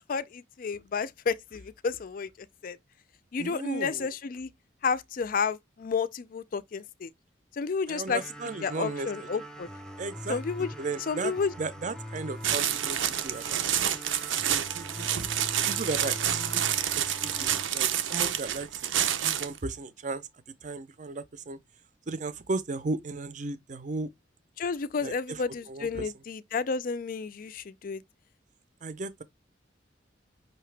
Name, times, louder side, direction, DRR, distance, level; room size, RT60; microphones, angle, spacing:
voice 1, 0.0-2.3 2.6-2.8 3.3-4.5 4.8-7.1 7.6-8.2 8.6-9.7 10.3-10.7 11.1-11.5 24.6-28.0, left 5 dB, 45° left, 0.4 m, -31 dB
voice 2, 3.4-4.1 7.9-9.3 10.0-11.3 11.6-13.7 14.5-15.1 15.7-16.7 17.0-18.7 19.1-20.3 20.6-21.6 22.1-24.1 25.0-25.4 25.7-26.1 28.8-29.2, right 3 dB, 40° right, 0.5 m, -35 dB
sound 1, 8.1-19.0, equal, 5° left, 0.6 m, -43 dB
sound 2, 12.4-19.6, right 10 dB, 90° right, 0.6 m, -28 dB
5.6 x 2.8 x 3.2 m
head